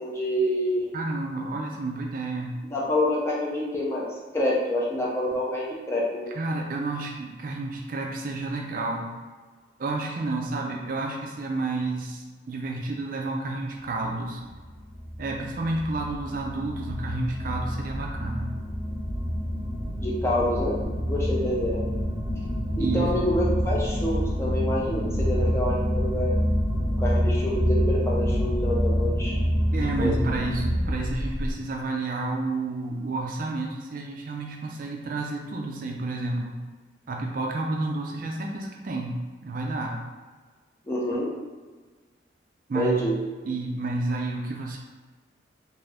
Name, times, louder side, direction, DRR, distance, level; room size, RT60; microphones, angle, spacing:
voice 1, 0.0-0.8 2.7-4.1 4.3-6.3 20.0-20.8 21.1-21.8 22.8-26.4 27.0-29.4 30.0-30.1 40.9-41.3 42.7-43.1, left 1 dB, 15° left, -5 dB, 0.5 m, -27 dB
voice 2, 0.9-2.6 6.3-9.1 9.8-14.4 15.2-18.5 22.8-23.1 29.7-36.6 37.1-40.0 42.7-43.1 43.5-44.8, right 2 dB, 45° right, 0 dB, 0.3 m, -30 dB
checking the nuclear reactor, 14.4-31.5, equal, 60° left, 0.7 m, -27 dB
2.6 x 2.5 x 3.3 m, 1.4 s
head